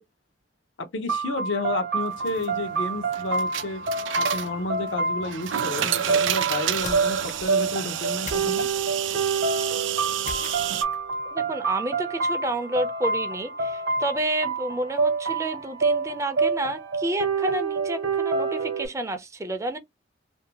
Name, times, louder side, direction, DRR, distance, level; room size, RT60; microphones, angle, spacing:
voice 1, 0.8-3.8 4.2-8.7, left 2 dB, 85° left, 0.6 m, -31 dB
sound 1, 1.1-18.9, right 4 dB, 60° right, 0.8 m, -27 dB
sound 2, 2.1-10.8, right 10 dB, 80° right, 0.4 m, -30 dB
sound 3, 6.8-7.6 8.3-9.2 10.3-11.1, left 4 dB, 40° left, 0.5 m, -39 dB
voice 2, 11.3-19.8, right 1 dB, 15° right, 0.4 m, -30 dB
2.6 x 2.2 x 2.7 m
head